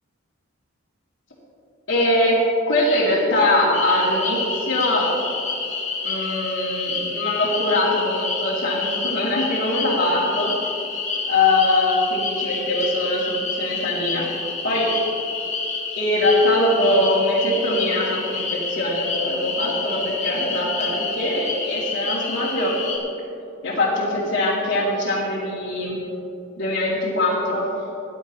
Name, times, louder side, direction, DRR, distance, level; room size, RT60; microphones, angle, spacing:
voice 1, 1.9-2.4 2.7-5.1 6.0-10.5 11.3-14.2 14.6-14.9 16.0-22.8 23.6-26.0 26.6-27.6, left 1 dB, 65° left, -11 dB, 2.9 m, -22 dB
sound 1, 3.7-23.0, left 4 dB, 35° left, 1.9 m, -28 dB
19.0 x 11.0 x 3.2 m, 2.7 s
head